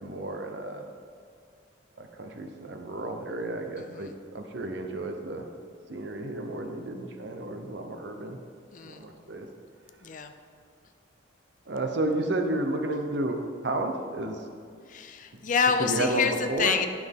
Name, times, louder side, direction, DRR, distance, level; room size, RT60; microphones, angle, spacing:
voice 1, 0.0-0.8 2.0-5.5 5.9-8.4 8.8-9.5 11.7-13.4 13.6-14.4 15.8-16.8, right 2 dB, 65° right, 5 dB, 0.7 m, -32 dB
voice 2, 3.8-4.1 8.7-9.0 10.0-10.3 14.9-16.9, left 6 dB, 40° left, 7 dB, 0.4 m, -27 dB
9.9 x 6.0 x 3.6 m, 2.2 s
head